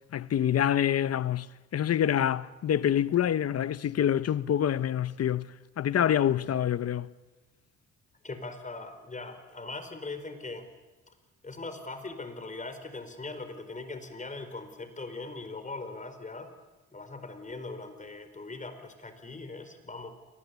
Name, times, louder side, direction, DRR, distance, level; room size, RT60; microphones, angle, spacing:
voice 1, 0.1-1.5 1.7-5.5 5.8-7.1, left 10 dB, 55° left, 1.0 m, -26 dB
voice 2, 8.2-10.7 11.1-11.2 11.4-16.5 16.9-20.1, left 3 dB, 25° left, 4.5 m, -40 dB
28.5 x 23.5 x 8.4 m
cardioid pair, 90°, 30 cm